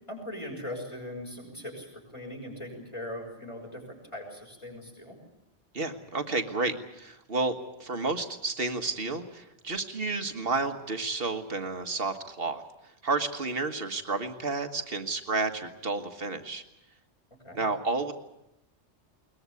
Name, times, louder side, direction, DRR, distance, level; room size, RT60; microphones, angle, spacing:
voice 1, 0.1-1.9 2.1-5.2 17.4-17.6, left 1 dB, 25° left, 1 dB, 6.1 m, -40 dB
voice 2, 5.7-7.5 7.8-12.6 13.0-16.6 17.5-18.1, right 3 dB, 55° right, 6 dB, 1.7 m, -31 dB
21.5 x 20.5 x 8.3 m, 0.87 s
omnidirectional pair, 1.2 m